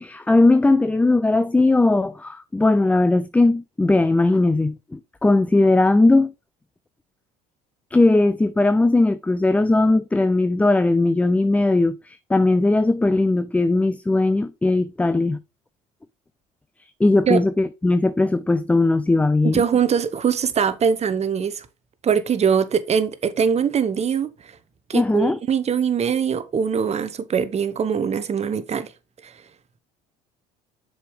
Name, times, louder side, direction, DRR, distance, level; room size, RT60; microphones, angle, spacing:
voice 1, 0.0-6.3 7.9-15.4 17.0-19.6 24.9-25.4, left 2 dB, 10° left, 0.3 m, -18 dB
voice 2, 19.4-21.7 22.0-24.3 24.9-28.9 29.2-29.3, right 7 dB, 35° right, 0.9 m, -22 dB
6.7 x 4.9 x 3.5 m
supercardioid pair, 80°, 18 cm